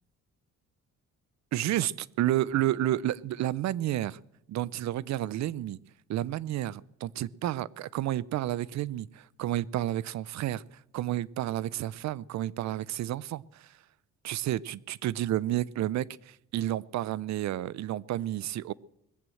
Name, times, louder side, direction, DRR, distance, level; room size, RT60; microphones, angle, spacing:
voice 1, 1.5-4.2 4.5-5.8 6.1-10.6 10.9-13.7 14.2-18.7, right 13 dB, 65° right, 24 dB, 0.5 m, -31 dB
20.0 x 7.7 x 7.7 m, 0.84 s
cardioid pair, 90°, 30 cm